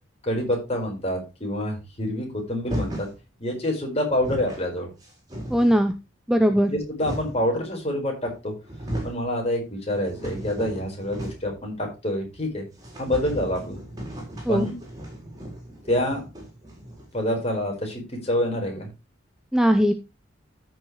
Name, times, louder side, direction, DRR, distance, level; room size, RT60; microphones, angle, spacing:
voice 1, 0.2-3.1 3.4-4.9 6.7-8.5 9.0-12.6 13.0-13.8 14.5-14.7 15.9-16.2 17.1-18.9, left 1 dB, 30° left, 1 dB, 4.5 m, -27 dB
sound 1, 2.6-3.2 3.8-4.6 5.0-5.9 6.6-7.5 8.3-8.4 8.6-9.2 9.6-11.6 11.9-12.0 12.3-12.4 12.8-17.3, right 1 dB, 20° right, 4.7 m, -35 dB
voice 2, 5.5-5.9 6.3-6.7 14.5-14.7 19.5-19.9, equal, 5° right, 8 dB, 0.6 m, -19 dB
14.5 x 6.4 x 3.1 m, 0.27 s
head